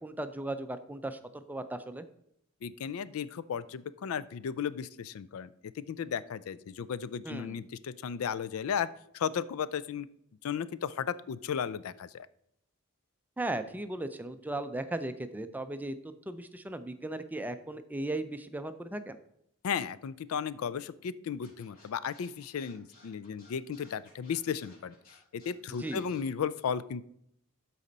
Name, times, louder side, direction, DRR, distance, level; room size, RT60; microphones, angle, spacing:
voice 1, 0.0-2.1 7.3-7.6 13.4-16.0 16.3-19.2 25.8-26.1, right 2 dB, 10° right, 10 dB, 0.4 m, -37 dB
voice 2, 2.6-5.5 5.8-8.9 9.1-10.1 10.4-12.3 19.6-24.9 25.3-27.0, left 7 dB, 75° left, 17 dB, 0.4 m, -35 dB
Scratching (performance technique), 21.4-26.2, left 2 dB, 45° left, 3.3 m, -58 dB
12.5 x 4.2 x 4.0 m, 0.74 s
head